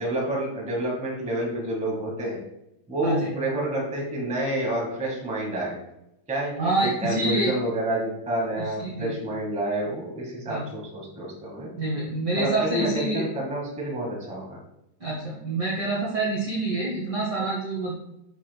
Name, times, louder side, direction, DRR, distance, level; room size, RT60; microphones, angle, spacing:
voice 1, 0.0-2.4 2.9-5.7 6.3-11.7 12.4-14.6, right 1 dB, 5° right, -3 dB, 0.6 m, -29 dB
voice 2, 6.6-7.5 8.6-9.2 10.5-10.7 11.7-13.3 15.0-17.9, right 2 dB, 85° right, -4 dB, 0.9 m, -27 dB
8.1 x 6.1 x 2.3 m, 0.85 s
omnidirectional pair, 3.8 m